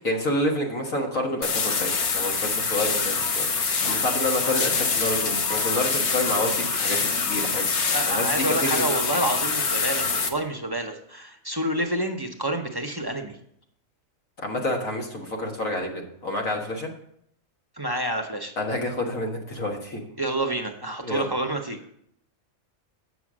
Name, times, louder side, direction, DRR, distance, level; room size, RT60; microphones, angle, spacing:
voice 1, 0.0-7.7 8.1-8.9 14.4-16.9 18.6-20.0 21.0-21.3, left 1 dB, 80° left, 1 dB, 2.0 m, -28 dB
sound 1, 1.4-10.3, left 5 dB, 60° left, 1.2 m, -25 dB
voice 2, 7.9-13.4 17.8-18.5 20.2-21.8, right 1 dB, 25° right, 4 dB, 0.6 m, -28 dB
7.9 x 6.2 x 6.1 m, 0.71 s
omnidirectional pair, 1.4 m